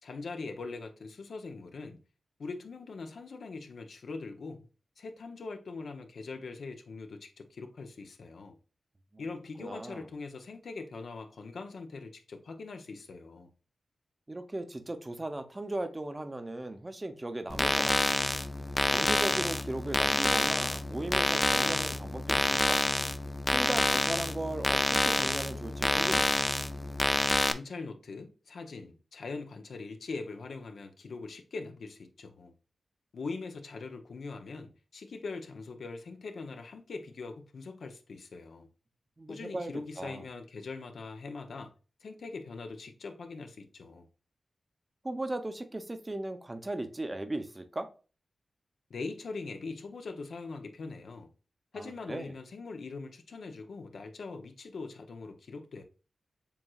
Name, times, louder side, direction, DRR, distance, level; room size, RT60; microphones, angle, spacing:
voice 1, 0.0-2.0 2.4-4.7 5.0-8.6 9.2-13.5 27.5-32.5 33.1-38.7 39.3-41.7 42.0-44.1 48.9-51.3 51.7-55.8, left 4 dB, 75° left, 0.7 m, -42 dB
voice 2, 9.6-10.0 14.3-18.2 18.9-22.8 23.5-26.3 39.2-39.7 40.0-40.2 45.0-47.9 51.7-52.3, right 2 dB, 25° right, 0.7 m, -37 dB
sound 1, 17.5-27.5, left 2 dB, 20° left, 0.4 m, -28 dB
7.0 x 3.1 x 2.3 m
wide cardioid pair, 80°, 0 cm